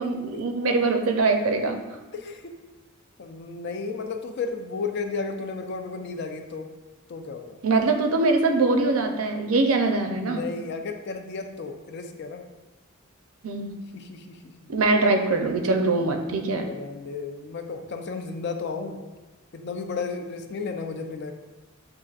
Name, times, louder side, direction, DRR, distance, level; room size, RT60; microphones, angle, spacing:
voice 1, 0.0-1.8 7.6-10.4 13.4-13.7 14.7-16.7, right 3 dB, 75° right, 4 dB, 0.5 m, -23 dB
voice 2, 2.1-2.5 3.2-6.7 7.1-7.6 10.0-12.4 13.9-14.7 16.4-19.0 19.5-21.3, left 4 dB, 50° left, 5 dB, 0.4 m, -33 dB
7.4 x 2.5 x 2.4 m, 1.2 s
head